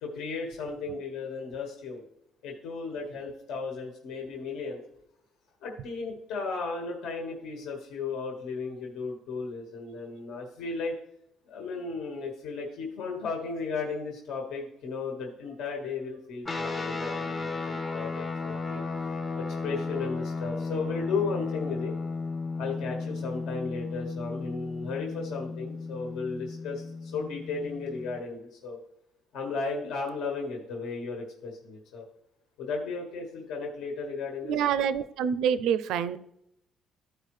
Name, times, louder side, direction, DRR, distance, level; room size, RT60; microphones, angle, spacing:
voice 1, 0.0-2.0 2.4-4.8 5.6-10.9 11.5-18.8 19.4-21.9 22.6-28.8 29.3-32.0 32.6-34.6, left 4 dB, 70° left, 0 dB, 1.6 m, -35 dB
sound 1, 16.4-28.2, left 4 dB, 20° left, 0.7 m, -34 dB
voice 2, 34.4-36.2, right 8 dB, 75° right, 14 dB, 0.5 m, -26 dB
14.0 x 4.9 x 3.2 m, 0.77 s
cardioid pair, 160°, 0 cm